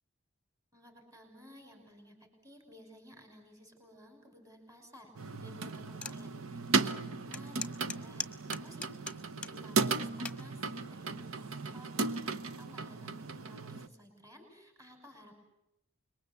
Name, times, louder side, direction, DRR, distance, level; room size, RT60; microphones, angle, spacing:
voice 1, 0.7-5.1 5.4-8.9 9.4-15.4, equal, 15° right, 3 dB, 5.9 m, -56 dB
sound 1, 5.1-13.9, right 4 dB, 90° right, 1.0 m, -35 dB
sound 2, 6.0-6.2 6.7-6.8 7.3-9.6 9.9-10.4 11.1-11.5, left 5 dB, 5° left, 1.3 m, -40 dB
26.5 x 22.5 x 8.4 m, 0.85 s
head